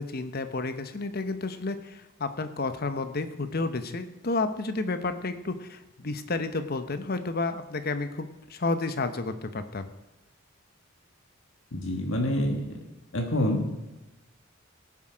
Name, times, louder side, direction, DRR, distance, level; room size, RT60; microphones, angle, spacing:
voice 1, 0.0-9.9, left 3 dB, 50° left, 10 dB, 0.9 m, -31 dB
voice 2, 11.7-12.8 13.1-13.6, left 1 dB, 85° left, 2 dB, 1.6 m, -27 dB
18.5 x 7.5 x 5.0 m, 1.1 s
head